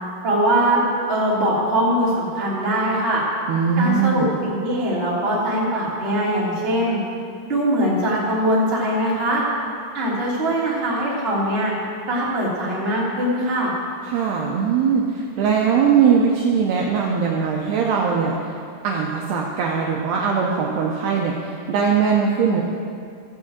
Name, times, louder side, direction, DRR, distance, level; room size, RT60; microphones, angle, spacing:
voice 1, 0.2-3.2 3.8-7.0 7.4-9.4 9.9-11.7 12.1-13.7, right 1 dB, 20° right, -7 dB, 1.9 m, -21 dB
voice 2, 3.5-4.3 14.1-18.5 18.8-22.6, right 6 dB, 80° right, -1 dB, 2.4 m, -20 dB
15.5 x 6.1 x 7.9 m, 2.4 s
omnidirectional pair, 5.8 m